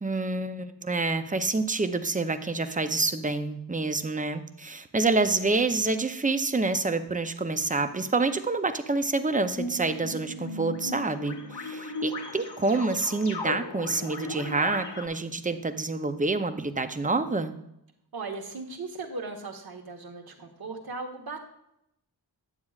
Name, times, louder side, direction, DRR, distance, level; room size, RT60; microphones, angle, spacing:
voice 1, 0.0-17.5, right 3 dB, 20° right, 9 dB, 0.5 m, -27 dB
sound 1, 9.6-15.1, left 2 dB, 85° left, 1.2 m, -37 dB
voice 2, 18.1-21.4, right 3 dB, 65° right, 2 dB, 1.2 m, -37 dB
9.7 x 8.5 x 2.4 m, 0.79 s
wide cardioid pair, 110°, 40 cm